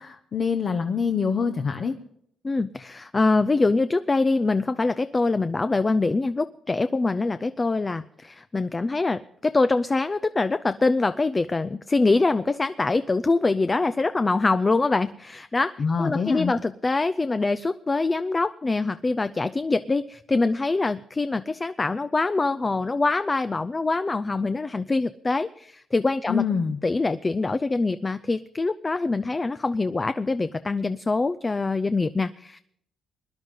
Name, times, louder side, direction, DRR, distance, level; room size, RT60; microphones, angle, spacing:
voice 1, 0.0-2.0 15.8-16.5 26.3-26.8, left 5 dB, 45° left, 5 dB, 0.9 m, -25 dB
voice 2, 2.4-26.4 26.8-32.6, left 3 dB, 25° left, 12 dB, 0.5 m, -24 dB
21.0 x 11.0 x 3.8 m, 0.68 s
cardioid pair, 90°, 0 cm